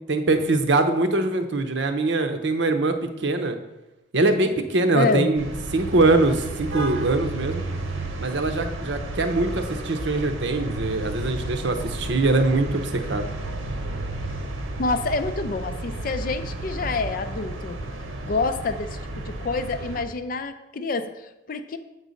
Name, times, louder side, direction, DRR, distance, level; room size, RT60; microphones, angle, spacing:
voice 1, 0.1-3.6 4.1-5.5 5.7-7.6 8.2-13.3, right 2 dB, 60° right, 7 dB, 0.7 m, -22 dB
voice 2, 4.9-5.3 14.8-17.8 18.2-21.8, left 3 dB, 45° left, 10 dB, 0.4 m, -27 dB
sound 1, 5.3-20.0, right 2 dB, 85° right, 1.0 m, -32 dB
7.5 x 4.0 x 6.3 m, 1.0 s
head